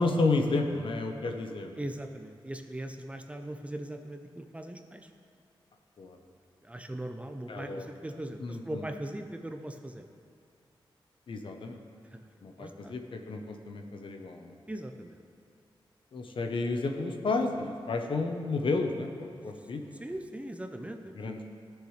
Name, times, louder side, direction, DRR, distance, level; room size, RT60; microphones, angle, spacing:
voice 1, 0.0-1.8 6.0-6.2 7.5-7.9 8.4-8.8 11.3-11.8 12.4-14.6 16.1-19.9 21.1-21.4, left 3 dB, 65° left, 4 dB, 0.9 m, -31 dB
voice 2, 1.8-5.1 6.6-10.0 12.1-12.2 12.6-12.9 14.7-15.2 20.0-21.4, right 1 dB, 15° right, 6 dB, 0.6 m, -40 dB
16.0 x 6.7 x 3.3 m, 2.5 s
wide cardioid pair, 95°, 9 cm